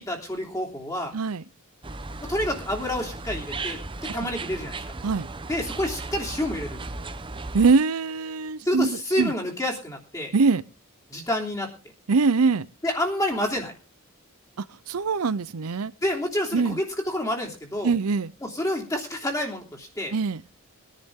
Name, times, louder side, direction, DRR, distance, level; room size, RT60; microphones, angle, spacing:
voice 1, 0.0-1.1 2.2-4.8 5.5-6.8 8.6-10.3 11.1-11.7 12.8-13.7 16.0-17.9 18.4-20.1, left 1 dB, 15° left, 3.1 m, -28 dB
voice 2, 1.1-1.4 4.1-4.3 5.0-5.3 7.5-9.3 10.3-10.6 12.1-12.7 14.6-15.9 16.5-16.8 17.8-18.3 20.1-20.4, right 4 dB, 80° right, 0.6 m, -23 dB
sound 1, 1.8-7.7, right 3 dB, 20° right, 0.9 m, -36 dB
21.0 x 10.5 x 3.7 m
head